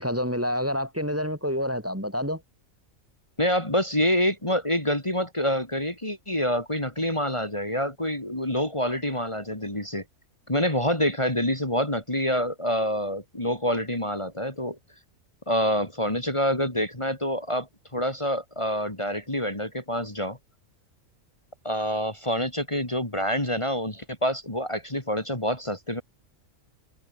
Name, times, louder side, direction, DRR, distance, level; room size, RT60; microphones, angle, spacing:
voice 1, 0.0-2.4, equal, 10° right, 3.8 m, -28 dB
voice 2, 3.4-10.0 10.5-14.8 15.5-20.4 21.6-26.0, equal, 20° left, 3.5 m, -27 dB
omnidirectional pair, 1.4 m